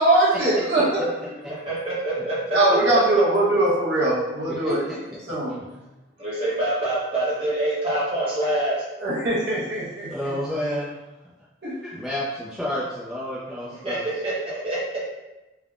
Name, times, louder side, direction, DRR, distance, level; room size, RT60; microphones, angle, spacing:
voice 1, 0.0-1.3 2.5-4.8 5.3-5.6 9.0-10.3 11.6-11.8, right 2 dB, 55° right, -8 dB, 1.0 m, -21 dB
voice 2, 1.5-2.4 3.1-3.2 6.2-8.8 13.8-14.8, right 1 dB, 30° right, -8 dB, 1.0 m, -26 dB
voice 3, 4.5-5.0 5.5-5.6 10.1-11.0 11.8-14.0, equal, ahead, -9 dB, 0.4 m, -30 dB
3.3 x 2.1 x 2.4 m, 1.0 s
head